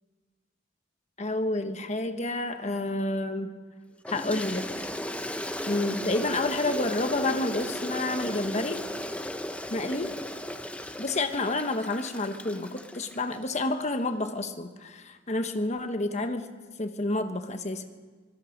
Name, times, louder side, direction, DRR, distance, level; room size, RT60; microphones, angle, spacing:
voice 1, 1.2-3.6 4.1-4.7 5.7-8.8 9.7-10.1 11.0-16.5 16.8-17.8, left 2 dB, 35° left, 7 dB, 1.2 m, -29 dB
Toilet flush, 4.1-13.4, left 1 dB, 5° left, 0.7 m, -36 dB
25.0 x 19.5 x 5.3 m, 1.4 s
head